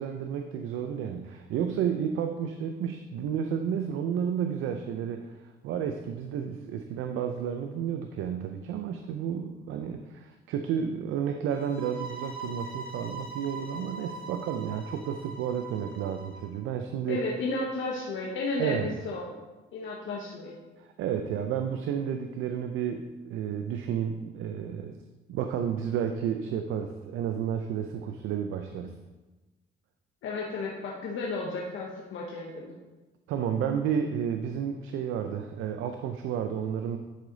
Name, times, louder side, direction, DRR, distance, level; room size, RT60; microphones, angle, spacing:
voice 1, 0.0-17.2 18.6-18.9 20.8-25.0 25.3-29.0 33.3-37.0, right 8 dB, 90° right, 6 dB, 0.5 m, -31 dB
sound 1, 11.5-16.5, right 3 dB, 50° right, 1.9 m, -41 dB
voice 2, 17.1-19.4 19.7-20.6 30.2-32.8, left 3 dB, 80° left, -2 dB, 1.2 m, -33 dB
10.5 x 5.0 x 4.0 m, 1.2 s
cardioid pair, 90°, 20 cm